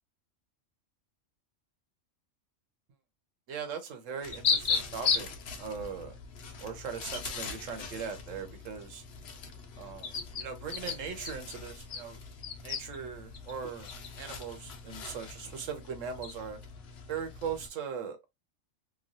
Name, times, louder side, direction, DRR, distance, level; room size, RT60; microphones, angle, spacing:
voice 1, 3.5-5.3 5.6-6.2 6.6-9.0 9.8-10.1 10.4-12.2 12.6-13.9 14.2-16.6 17.1-18.2, right 6 dB, 85° right, 1.2 m, -39 dB
sound 1, 4.2-17.7, left 5 dB, 60° left, 0.9 m, -37 dB
3.1 x 2.3 x 2.6 m
omnidirectional pair, 1.3 m